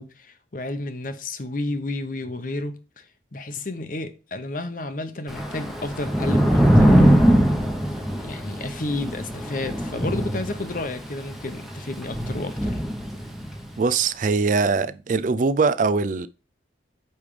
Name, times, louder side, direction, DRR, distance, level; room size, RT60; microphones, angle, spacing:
voice 1, 0.0-3.0 3.3-7.4 8.2-12.8, left 2 dB, 45° left, 0.9 m, -31 dB
Thunder / Rain, 5.3-13.7, equal, ahead, 0.9 m, -21 dB
voice 2, 13.8-16.3, right 4 dB, 45° right, 0.4 m, -22 dB
8.6 x 3.3 x 5.0 m
head